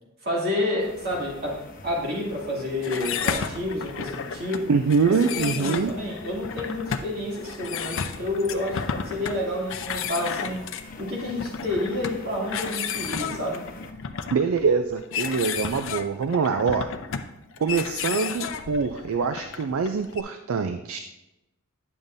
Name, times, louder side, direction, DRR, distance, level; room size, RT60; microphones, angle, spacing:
voice 1, 0.2-4.7 5.0-10.6 11.0-13.7, left 1 dB, 50° right, -4 dB, 2.4 m, -29 dB
sound 1, 0.8-13.9, left 2 dB, 40° left, 0.8 m, -46 dB
sound 2, 2.8-20.2, left 6 dB, 65° left, 0.5 m, -33 dB
voice 2, 4.7-5.9 14.3-16.9 17.6-21.0, right 5 dB, 70° right, 8 dB, 0.4 m, -24 dB
9.6 x 7.2 x 2.6 m, 0.93 s
head